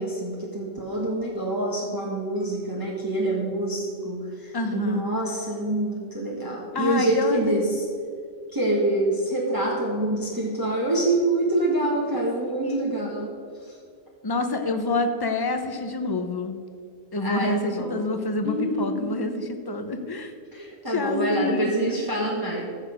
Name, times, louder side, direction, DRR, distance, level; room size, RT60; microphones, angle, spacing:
voice 1, 0.0-7.8 8.5-13.3 13.6-13.8 17.2-18.0 18.4-19.2 20.5-22.6, right 1 dB, 20° right, -4 dB, 1.4 m, -26 dB
voice 2, 4.5-5.0 6.7-7.4 12.6-12.7 14.2-16.5 17.1-20.3 20.9-22.0, left 2 dB, 25° left, 7 dB, 0.7 m, -27 dB
14.5 x 6.6 x 5.0 m, 2.3 s
omnidirectional pair, 1.2 m